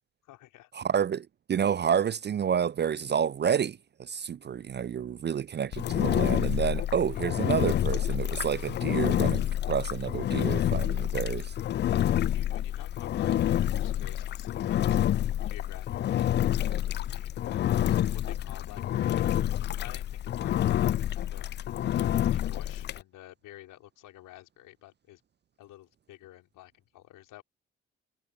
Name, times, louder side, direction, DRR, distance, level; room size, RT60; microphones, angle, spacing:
voice 1, 0.2-0.7 7.0-7.3 12.1-17.7 18.1-21.5 21.9-25.2 25.6-27.4, left 15 dB, 65° left, 4.4 m, -51 dB
voice 2, 0.7-11.5, right 8 dB, 30° right, 0.5 m, -29 dB
Engine, 5.7-23.0, left 12 dB, 30° left, 0.4 m, -28 dB
figure-of-eight pair, 40°, 35 cm